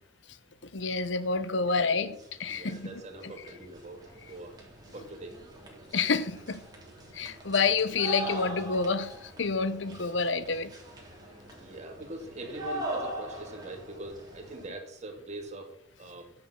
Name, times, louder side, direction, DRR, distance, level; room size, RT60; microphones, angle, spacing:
voice 1, 0.7-2.1 2.4-2.9 5.9-6.6 7.1-10.7, left 4 dB, 65° left, 0.9 m, -28 dB
sound 1, 1.6-1.7 2.0-14.7, right 1 dB, 20° right, 2.9 m, -42 dB
voice 2, 1.6-2.2 2.5-4.6 4.9-5.4 11.5-16.3, right 2 dB, 35° right, 2.0 m, -43 dB
10.0 x 6.7 x 7.4 m
head